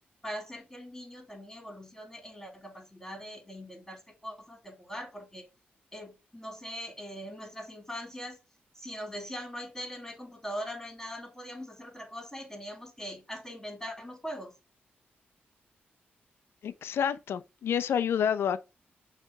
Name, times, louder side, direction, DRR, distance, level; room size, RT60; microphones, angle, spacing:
voice 1, 0.2-5.5 5.9-8.4 8.7-14.6, equal, 10° left, 3.5 m, -41 dB
voice 2, 16.6-18.6, left 8 dB, 85° left, 0.7 m, -29 dB
6.5 x 3.4 x 4.8 m
cardioid pair, 100°, 4 cm